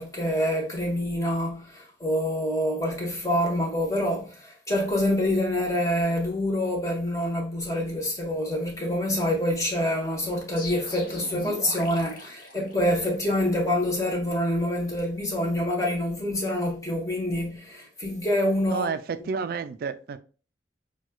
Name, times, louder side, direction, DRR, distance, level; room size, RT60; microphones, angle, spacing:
voice 1, 0.0-18.9, left 1 dB, 20° left, 1.1 m, -26 dB
sound 1, 10.6-13.3, left 1 dB, 50° left, 1.0 m, -40 dB
voice 2, 18.7-20.2, right 5 dB, 55° right, 0.3 m, -30 dB
6.1 x 2.3 x 2.2 m
head